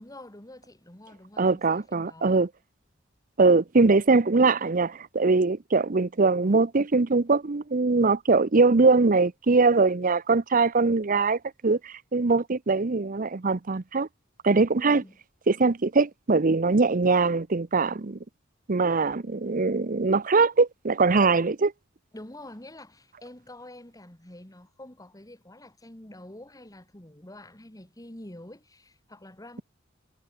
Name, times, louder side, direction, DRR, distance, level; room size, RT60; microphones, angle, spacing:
voice 1, 0.0-2.3 14.8-15.2 22.1-29.6, left 1 dB, 20° left, 2.4 m, -47 dB
voice 2, 1.4-2.5 3.4-14.1 14.4-15.0 15.5-18.2 18.7-21.7, right 3 dB, 45° right, 0.7 m, -22 dB
head